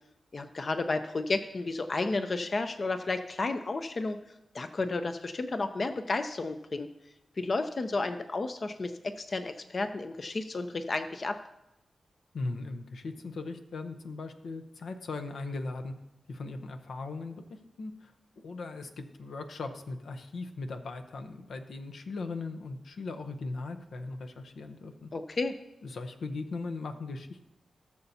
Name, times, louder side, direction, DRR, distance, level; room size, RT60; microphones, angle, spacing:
voice 1, 0.3-4.2 4.5-6.9 7.4-11.4 25.1-25.5, left 3 dB, 45° left, 8 dB, 0.5 m, -32 dB
voice 2, 12.3-15.9 16.3-17.4 17.8-18.1 18.4-25.1 25.8-27.5, left 3 dB, 85° left, 7 dB, 0.8 m, -38 dB
18.0 x 6.9 x 2.8 m, 0.90 s
wide cardioid pair, 85°, 0 cm